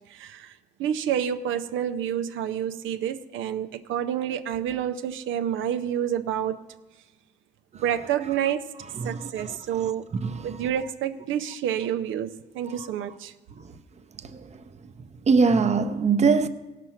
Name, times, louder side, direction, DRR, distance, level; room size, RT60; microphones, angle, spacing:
voice 1, 0.1-0.5 0.8-6.6 7.8-8.7 9.0-10.1 10.4-13.3, right 9 dB, 80° right, 0.5 m, -28 dB
voice 2, 15.3-16.5, right 4 dB, 35° right, 0.7 m, -20 dB
16.5 x 5.9 x 5.8 m
cardioid pair, 90°, 20 cm